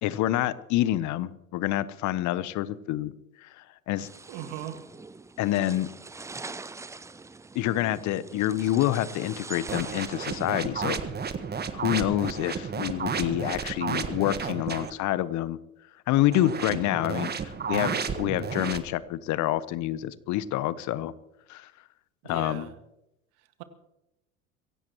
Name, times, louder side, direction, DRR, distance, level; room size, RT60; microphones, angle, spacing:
voice 1, 0.0-3.1 3.4-4.1 5.4-5.9 7.5-11.0 11.8-15.6 16.1-21.1 21.5-21.7 22.2-22.7, left 14 dB, 45° left, 17 dB, 0.9 m, -27 dB
sound 1, 4.0-10.5, right 3 dB, 5° right, 0.5 m, -43 dB
voice 2, 4.3-4.9 16.6-16.9 22.2-22.7 23.4-23.6, right 11 dB, 60° right, 9 dB, 1.9 m, -40 dB
sound 2, 9.7-14.9 16.3-18.8, right 6 dB, 25° right, 1.5 m, -32 dB
23.0 x 16.5 x 3.1 m, 0.88 s
hypercardioid pair, 75°, 41 cm